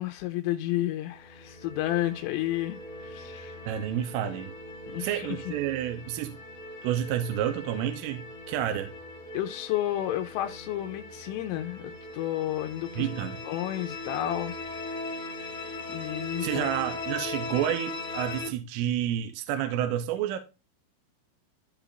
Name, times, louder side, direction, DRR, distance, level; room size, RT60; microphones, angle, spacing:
voice 1, 0.0-3.6 4.9-5.3 9.3-14.6 15.0-15.6 15.9-16.6, left 14 dB, 85° left, 3.2 m, -32 dB
sound 1, 1.1-18.5, left 2 dB, 35° left, 2.4 m, -39 dB
voice 2, 3.7-4.5 5.0-6.4 6.8-8.9 13.0-13.4 16.4-20.4, right 11 dB, 85° right, 3.2 m, -30 dB
14.0 x 5.0 x 2.5 m
omnidirectional pair, 5.9 m